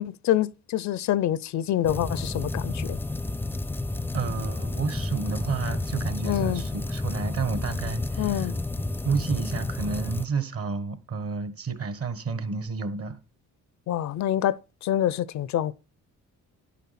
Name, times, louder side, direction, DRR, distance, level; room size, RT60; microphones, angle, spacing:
voice 1, 0.0-3.0 6.2-6.6 8.2-8.5 13.9-14.6 14.8-15.7, left 12 dB, 70° left, 0.6 m, -26 dB
sound 1, 1.8-10.3, left 2 dB, 5° left, 0.5 m, -31 dB
voice 2, 4.1-8.5 9.0-13.2, right 5 dB, 50° right, 1.3 m, -31 dB
11.0 x 8.3 x 4.2 m
cardioid pair, 90°, 30 cm